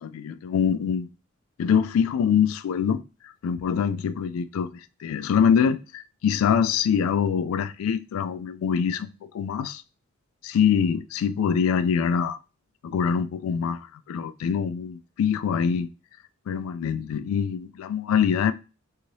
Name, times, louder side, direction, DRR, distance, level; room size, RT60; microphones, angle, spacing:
voice 1, 0.0-1.1 1.6-3.0 3.4-4.7 5.0-9.8 10.4-12.4 12.8-15.9 16.5-18.5, left 7 dB, 85° left, 0.3 m, -24 dB
2.7 x 2.7 x 3.0 m
head